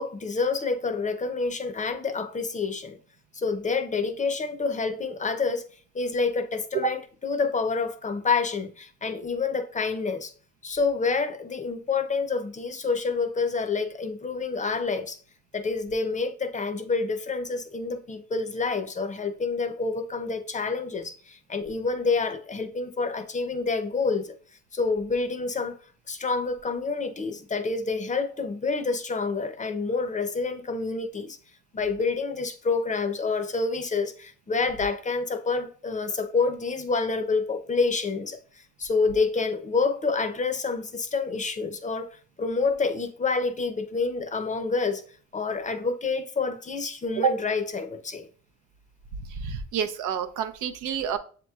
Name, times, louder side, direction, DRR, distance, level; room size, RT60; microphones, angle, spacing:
voice 1, 0.0-3.0 3.3-5.6 5.9-10.3 10.6-15.2 15.5-24.4 24.7-25.8 26.1-31.4 31.7-45.0 45.3-48.3, left 4 dB, 25° left, 0.6 m, -28 dB
voice 2, 49.3-51.2, right 7 dB, 85° right, 0.6 m, -28 dB
7.2 x 2.9 x 2.3 m
cardioid pair, 90°, 30 cm